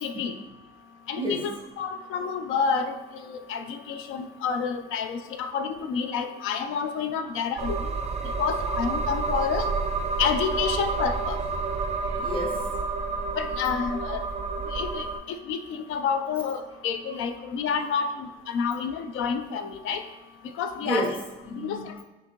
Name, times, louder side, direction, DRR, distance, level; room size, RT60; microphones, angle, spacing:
voice 1, 0.0-0.3 1.1-1.5 1.8-3.0 3.5-7.8 8.4-9.7 10.2-11.4 13.3-14.2 14.7-15.1 15.5-20.0 20.6-21.2 21.5-21.8, left 6 dB, 85° left, 9 dB, 0.4 m, -29 dB
voice 2, 1.1-1.5 8.3-8.4 12.0-12.8 20.8-21.9, equal, 25° left, -4 dB, 1.3 m, -31 dB
sound 1, 7.6-15.2, right 4 dB, 35° right, 0.4 m, -29 dB
5.7 x 2.7 x 3.0 m, 1.1 s
cardioid pair, 90°, 20 cm